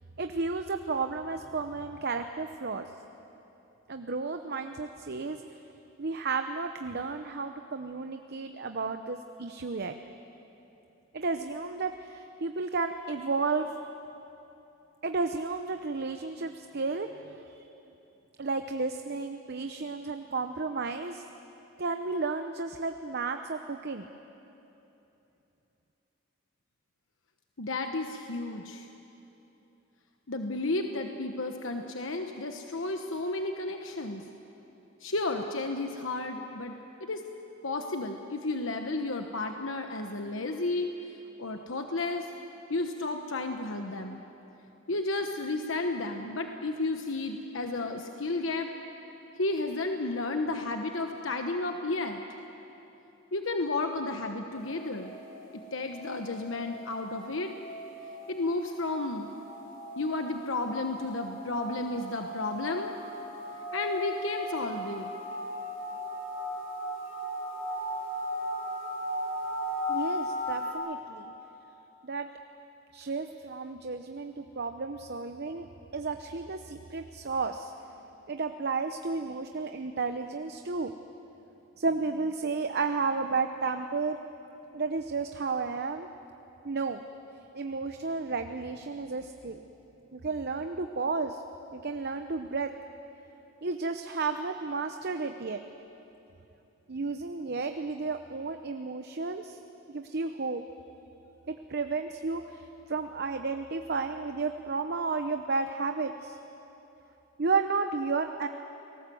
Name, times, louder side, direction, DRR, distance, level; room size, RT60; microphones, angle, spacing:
voice 1, 0.2-2.9 3.9-5.4 6.0-10.0 11.1-13.8 15.0-17.7 18.4-21.2 21.8-24.1 69.9-71.3 72.0-72.3 72.9-75.7 75.9-77.7 78.3-80.9 81.8-84.2 84.7-86.1 86.6-87.0 87.5-89.6 90.1-91.4 91.7-92.7 93.6-95.6 96.9-99.6 99.9-100.6 101.5-106.4 107.4-108.5, right 4 dB, 55° right, 7 dB, 0.8 m, -32 dB
voice 2, 27.6-28.9 30.3-34.2 35.0-37.2 37.6-40.9 41.4-42.3 42.7-44.2 44.9-48.7 49.4-52.2 53.3-55.1 55.5-57.5 58.3-59.3 59.9-62.9 63.7-65.1, left 2 dB, 70° left, 4 dB, 1.2 m, -32 dB
sound 1, 54.5-70.7, left 1 dB, 50° left, 7.5 m, -37 dB
29.5 x 19.5 x 7.8 m, 3.0 s
head